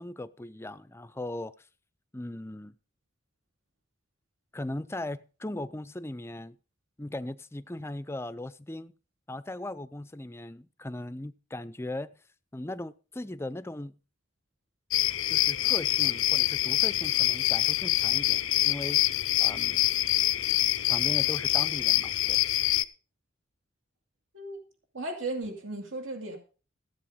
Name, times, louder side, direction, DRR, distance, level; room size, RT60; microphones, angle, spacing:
voice 1, 0.0-1.5 2.1-2.7 4.5-6.6 7.0-8.9 9.3-12.2 12.5-13.9 15.3-19.0 19.4-19.8 20.9-22.4, left 1 dB, 15° left, 0.5 m, -38 dB
sound 1, 14.9-22.8, left 14 dB, 85° left, 0.6 m, -25 dB
voice 2, 24.9-26.4, right 2 dB, 75° right, 2.6 m, -35 dB
15.0 x 7.9 x 5.1 m
head